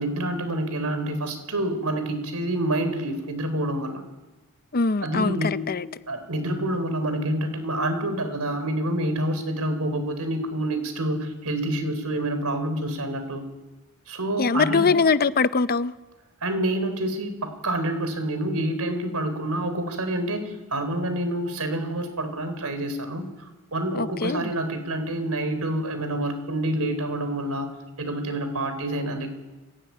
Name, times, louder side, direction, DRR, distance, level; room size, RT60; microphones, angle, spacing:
voice 1, 0.0-4.0 5.0-5.7 6.1-13.4 14.1-14.9 16.4-23.3 23.7-27.7 28.0-29.3, right 1 dB, 85° right, 3.9 m, -27 dB
voice 2, 4.7-5.8 14.4-15.9 23.9-24.5, left 4 dB, 45° left, 0.7 m, -22 dB
24.5 x 16.5 x 9.4 m
head